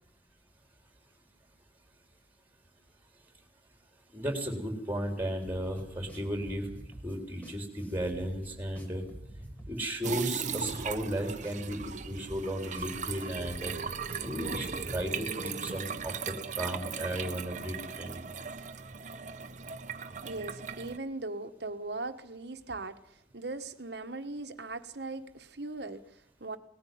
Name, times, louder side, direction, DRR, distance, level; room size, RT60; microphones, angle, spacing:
voice 1, 4.1-6.7 7.0-9.0 9.7-13.7 14.2-16.1 16.5-18.3, right 1 dB, 10° right, 3.9 m, -35 dB
sound 1, 5.4-16.1, equal, 10° left, 2.6 m, -48 dB
sound 2, 10.0-21.0, right 6 dB, 45° right, 1.0 m, -38 dB
voice 2, 20.2-23.0 23.3-26.6, right 2 dB, 65° right, 1.4 m, -39 dB
19.0 x 14.5 x 9.4 m
head